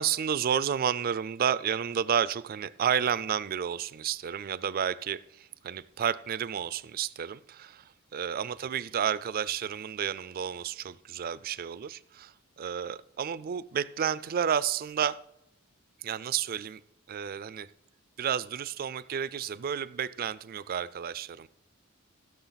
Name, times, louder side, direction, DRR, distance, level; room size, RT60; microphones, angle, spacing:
voice 1, 0.0-15.2 16.0-16.8 17.1-17.7 18.2-21.5, right 8 dB, 45° right, 18 dB, 0.4 m, -31 dB
16.0 x 6.4 x 4.0 m, 0.82 s
head